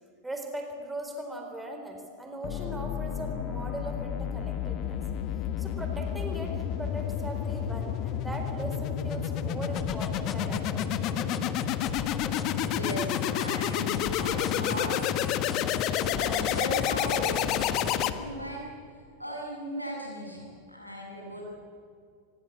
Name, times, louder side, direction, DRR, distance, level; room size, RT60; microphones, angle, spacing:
voice 1, 0.2-5.0 5.6-10.8, right 1 dB, 5° right, 3 dB, 4.1 m, -39 dB
sound 1, 2.4-18.5, left 10 dB, 40° left, 1.3 m, -30 dB
sound 2, 9.8-18.1, left 5 dB, 20° left, 2.0 m, -40 dB
voice 2, 12.5-15.1 15.9-18.6 19.2-21.4, equal, 90° left, -1 dB, 7.9 m, -37 dB
25.0 x 21.0 x 8.6 m, 2.3 s
figure-of-eight pair, 90°, 0 cm